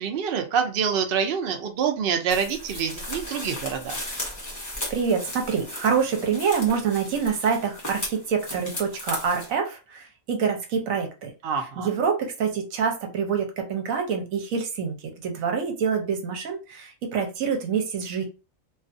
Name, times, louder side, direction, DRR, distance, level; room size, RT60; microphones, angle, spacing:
voice 1, 0.0-4.0 11.4-11.9, right 7 dB, 65° right, 5 dB, 0.6 m, -26 dB
sound 1, 2.3-9.5, left 1 dB, 20° left, 0.6 m, -36 dB
voice 2, 4.6-11.3 11.8-14.9 15.2-18.2, right 6 dB, 80° right, 3 dB, 1.1 m, -26 dB
2.4 x 2.3 x 2.5 m, 0.29 s
omnidirectional pair, 1.4 m